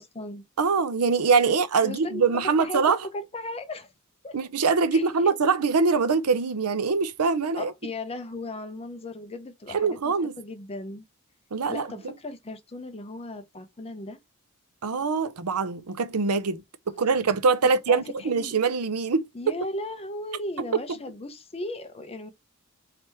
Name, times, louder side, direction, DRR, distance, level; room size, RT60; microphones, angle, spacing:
voice 1, 0.0-0.4 1.5-1.6 1.8-3.9 4.2-4.4 4.9-5.4 7.6-11.0 11.7-14.2 17.6-18.5 19.3-22.3, left 2 dB, 25° left, 0.7 m, -36 dB
voice 2, 0.6-3.0 4.3-7.7 9.7-10.3 11.5-11.9 14.8-16.6 16.9-19.2, right 4 dB, 85° right, 0.6 m, -23 dB
3.4 x 2.9 x 4.4 m
head